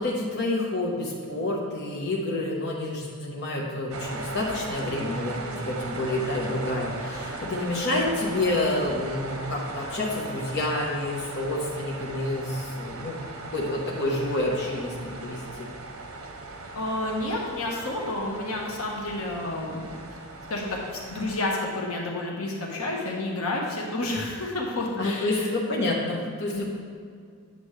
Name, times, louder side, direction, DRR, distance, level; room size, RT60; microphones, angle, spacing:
voice 1, 0.0-13.2 13.5-15.7 25.0-26.6, left 2 dB, 55° left, -3 dB, 1.3 m, -28 dB
sound 1, 3.9-21.5, right 2 dB, 75° right, 0.9 m, -38 dB
voice 2, 16.7-20.0 20.5-25.5 26.5-26.6, left 2 dB, 80° left, -2 dB, 1.3 m, -30 dB
9.5 x 7.0 x 3.3 m, 2.1 s
head